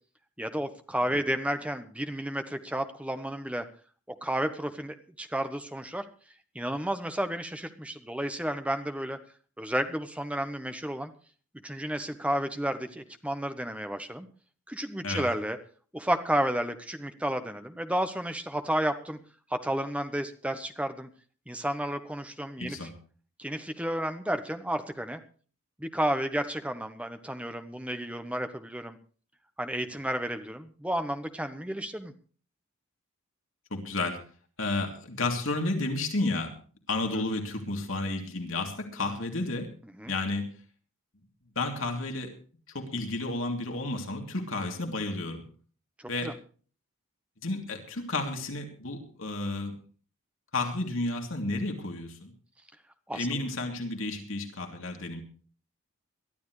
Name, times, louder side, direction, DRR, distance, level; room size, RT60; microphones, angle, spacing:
voice 1, 0.4-3.6 4.1-6.0 6.5-9.2 9.6-11.1 11.6-14.3 14.7-15.6 15.9-19.2 19.5-21.1 21.5-22.9 23.4-25.2 25.8-29.0 29.6-32.1 39.9-40.1 46.0-46.3 53.1-53.3, right 1 dB, 5° right, 8 dB, 1.1 m, -32 dB
voice 2, 22.6-22.9 33.7-34.2 34.6-36.5 36.9-39.7 40.1-40.5 41.5-42.3 42.7-45.4 46.1-46.3 47.4-49.7 50.5-52.3 53.1-55.2, left 2 dB, 65° left, 3 dB, 3.0 m, -31 dB
22.5 x 13.0 x 3.2 m, 0.41 s
head